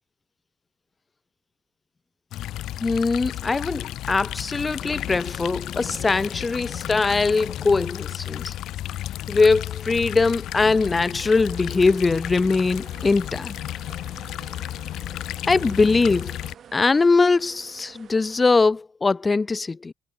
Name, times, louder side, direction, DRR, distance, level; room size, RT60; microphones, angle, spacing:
sound 1, 2.3-16.5, left 13 dB, 85° left, 1.2 m, -33 dB
voice 1, 2.8-8.5 9.3-13.5 15.4-16.3 16.7-19.9, left 3 dB, 25° left, 1.3 m, -21 dB
sound 2, 4.5-9.0, left 8 dB, 55° left, 6.1 m, -41 dB
sound 3, 10.4-18.7, right 8 dB, 60° right, 4.7 m, -48 dB
cardioid pair, 90°, 0 cm